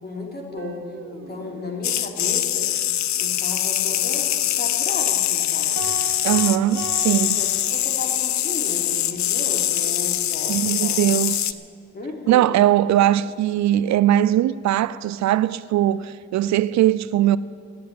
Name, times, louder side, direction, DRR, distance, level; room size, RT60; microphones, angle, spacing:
voice 1, 0.0-0.9 1.1-2.7 3.2-5.8 7.2-11.0 11.9-12.5, left 2 dB, 35° left, 3.1 m, -34 dB
Guitar, 0.6-3.5, right 2 dB, 40° right, 1.4 m, -43 dB
sound 1, 1.8-11.5, left 12 dB, 65° left, 0.7 m, -23 dB
sound 2, 5.8-8.2, right 6 dB, 20° right, 3.0 m, -36 dB
voice 2, 6.2-7.4 10.5-11.5 12.3-17.4, right 12 dB, 65° right, 0.5 m, -20 dB
15.0 x 10.5 x 8.6 m
cardioid pair, 90°, 30 cm